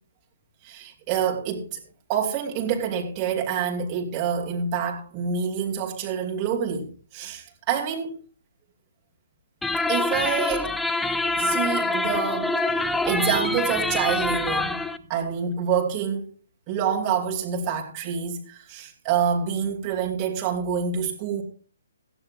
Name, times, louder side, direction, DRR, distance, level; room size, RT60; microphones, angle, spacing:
voice 1, 0.6-1.8 2.1-8.2 9.9-10.7 11.4-12.5 13.0-14.8 15.1-16.3 16.7-21.4, right 7 dB, 25° right, 2.9 m, -27 dB
sound 1, 9.6-15.0, left 2 dB, 5° left, 0.9 m, -25 dB
18.0 x 15.0 x 2.5 m
figure-of-eight pair, 130°, 0 cm